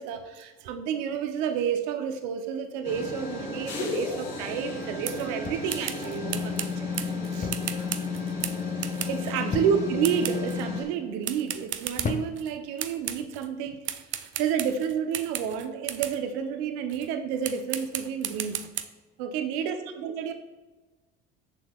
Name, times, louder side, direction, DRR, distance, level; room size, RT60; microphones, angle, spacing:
voice 1, 0.0-6.9 7.3-7.5 9.1-18.6 19.2-20.3, right 7 dB, 75° right, 7 dB, 0.8 m, -30 dB
sound 1, 2.8-10.8, left 4 dB, 90° left, 1.6 m, -33 dB
sound 2, 5.0-5.3 5.7-9.4 10.0-10.7 11.2-12.5 12.8-13.5 13.8-16.2 16.9-17.1 17.4-18.8, right 10 dB, 45° right, 0.5 m, -35 dB
sound 3, 5.4-6.0 7.4-7.8 8.1-8.5 9.5-10.1 10.8-11.2 12.0-12.6 13.6-13.8, left 4 dB, 25° left, 0.6 m, -35 dB
6.8 x 6.2 x 2.4 m, 1.2 s
hypercardioid pair, 70°, 29 cm